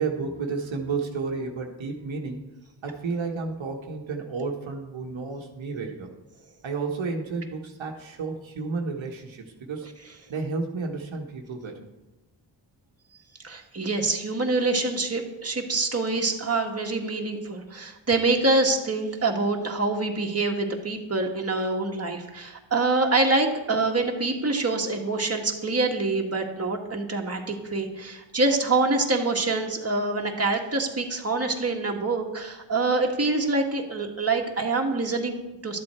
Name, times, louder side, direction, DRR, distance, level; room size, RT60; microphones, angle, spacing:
voice 1, 0.0-2.4 2.8-6.1 6.6-9.9 10.3-11.9, right 4 dB, 85° right, 1 dB, 1.5 m, -31 dB
voice 2, 13.4-35.8, right 3 dB, 30° right, 1 dB, 1.8 m, -25 dB
12.5 x 7.7 x 4.4 m, 1.1 s
cardioid pair, 50°, 46 cm